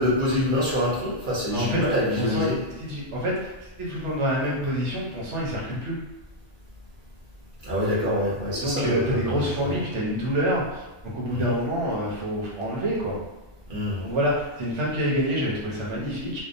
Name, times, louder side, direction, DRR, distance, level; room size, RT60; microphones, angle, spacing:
voice 1, 0.0-2.5 7.6-9.7 11.4-11.5 13.7-14.0, left 1 dB, 50° right, -7 dB, 0.9 m, -25 dB
voice 2, 1.5-2.5 2.8-3.5 3.8-6.0 8.0-8.1 8.5-13.2 14.0-16.4, equal, 75° right, -5 dB, 1.0 m, -27 dB
2.7 x 2.1 x 2.5 m, 1.1 s
omnidirectional pair, 1.2 m